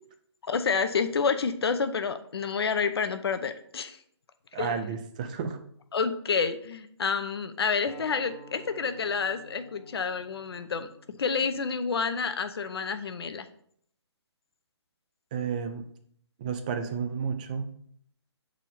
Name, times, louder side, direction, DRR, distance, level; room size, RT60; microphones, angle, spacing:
voice 1, 0.4-4.0 4.6-4.7 5.9-13.5, left 5 dB, 60° left, 9 dB, 0.6 m, -29 dB
voice 2, 4.5-5.6 15.3-15.8 16.4-17.7, right 6 dB, 15° right, 8 dB, 0.3 m, -31 dB
Acoustic guitar, 7.9-13.1, equal, 15° left, 0.9 m, -52 dB
6.1 x 4.2 x 4.0 m, 0.63 s
hypercardioid pair, 150°, 15 cm